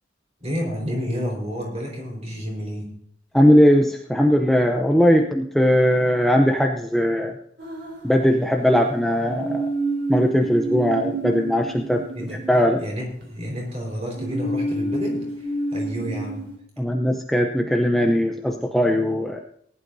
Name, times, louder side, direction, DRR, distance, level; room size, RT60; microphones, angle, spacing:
voice 1, 0.4-2.9 12.1-12.4 12.8-16.5, equal, 35° right, 0 dB, 4.5 m, -30 dB
voice 2, 3.3-7.3 8.0-9.7 10.1-12.1 12.5-12.8 16.8-19.4, equal, ahead, 2 dB, 0.6 m, -19 dB
sound 1, 7.6-8.6 9.3-13.2 14.2-16.6, right 2 dB, 55° right, 3.4 m, -29 dB
19.0 x 11.5 x 2.7 m, 0.66 s
head